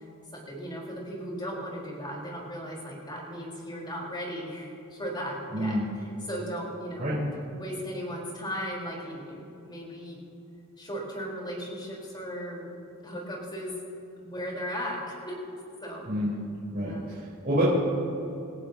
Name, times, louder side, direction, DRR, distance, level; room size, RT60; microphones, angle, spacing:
voice 1, 0.3-7.1 7.6-10.2 10.8-12.7 13.0-13.8 14.2-15.3 15.8-16.1 16.8-17.1, equal, 20° left, -3 dB, 4.4 m, -36 dB
voice 2, 16.7-17.6, right 1 dB, 40° right, -9 dB, 4.4 m, -28 dB
28.0 x 15.0 x 3.0 m, 2.7 s
head